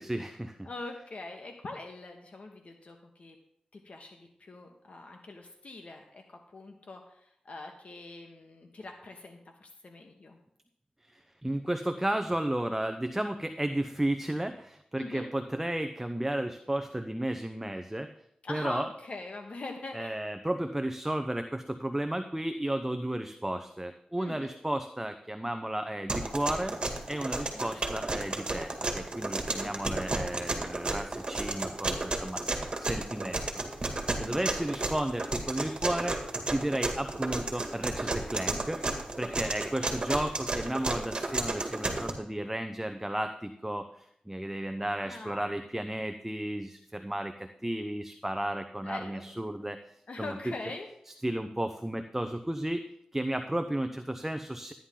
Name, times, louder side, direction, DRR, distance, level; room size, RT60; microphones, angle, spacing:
voice 1, 0.0-0.7 11.0-18.1 18.5-18.9 19.9-26.8 27.1-33.4 34.2-36.2 36.5-38.8 39.2-49.8 50.2-50.5 51.2-52.9 53.1-54.7, right 1 dB, 10° right, 7 dB, 0.7 m, -33 dB
voice 2, 0.6-3.4 3.7-10.4 15.0-15.3 18.4-20.2 24.2-24.6 27.7-27.9 29.5-29.7 34.1-34.8 39.4-40.0 44.8-45.5 48.8-49.2 49.5-49.6 50.1-50.9, left 2 dB, 60° left, 3 dB, 1.4 m, -43 dB
sound 1, 26.1-42.1, right 2 dB, 40° right, 2.0 m, -32 dB
13.0 x 10.0 x 3.8 m, 0.71 s
cardioid pair, 65°, 3 cm